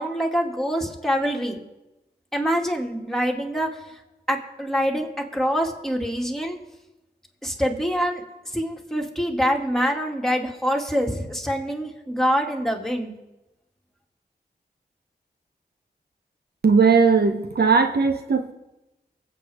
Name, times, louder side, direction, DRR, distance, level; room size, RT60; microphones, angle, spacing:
voice 1, 0.0-1.6 2.3-4.0 4.3-6.6 7.4-8.2 8.5-13.2, equal, ahead, 1 dB, 2.3 m, -25 dB
voice 2, 16.6-18.5, right 5 dB, 70° right, 6 dB, 0.9 m, -18 dB
23.0 x 8.2 x 3.6 m, 0.99 s
cardioid pair, 45°, 18 cm